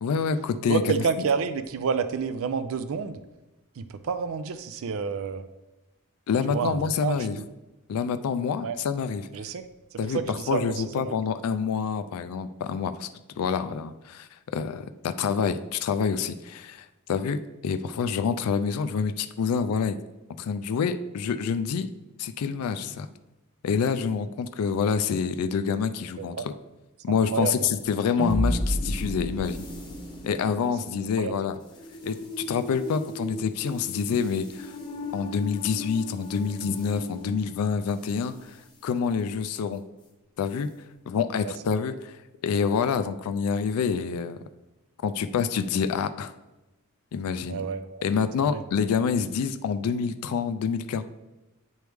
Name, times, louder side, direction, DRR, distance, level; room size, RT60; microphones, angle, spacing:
voice 1, 0.0-0.9 6.3-7.4 7.9-9.3 10.0-13.1 13.4-20.0 20.4-21.9 22.2-23.1 23.6-26.5 27.0-29.7 30.2-31.6 32.0-34.7 35.1-38.6 38.8-39.8 40.4-40.7 41.1-42.2 42.4-44.4 45.0-46.3 47.1-47.6 48.0-51.0, left 6 dB, 70° left, 11 dB, 0.3 m, -27 dB
voice 2, 0.7-3.2 3.8-5.4 6.5-7.4 8.6-8.8 9.3-11.1 26.2-26.4 27.1-27.7 31.2-31.3 41.4-41.5 47.5-48.0 48.5-48.6, right 6 dB, 65° right, 12 dB, 0.4 m, -29 dB
sound 1, 27.8-38.3, equal, 20° left, 0.8 m, -34 dB
8.9 x 3.1 x 3.4 m, 1.0 s
head